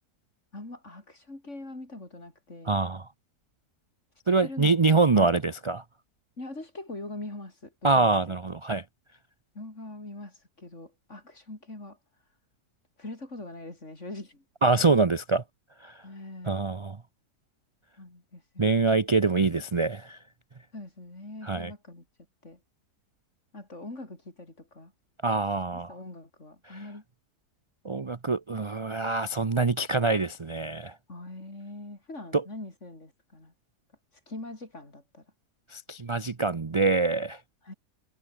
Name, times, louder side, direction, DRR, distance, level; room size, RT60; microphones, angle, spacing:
voice 1, 0.5-2.8 4.4-4.7 5.1-5.4 6.4-8.4 9.5-12.0 13.0-14.4 16.0-16.7 18.0-19.1 20.7-22.1 22.4-22.6 23.5-24.9 25.7-27.0 31.1-33.5 34.3-35.3 37.6-37.7, left 2 dB, 45° left, 5.5 m, -42 dB
voice 2, 2.7-3.0 4.3-5.8 7.8-8.8 14.6-15.4 15.8-15.9 16.5-17.0 18.6-20.2 21.5-21.7 25.2-25.9 27.8-30.9 32.3-32.4 35.7-37.4, right 3 dB, 45° right, 0.4 m, -25 dB
omnidirectional pair, 1.8 m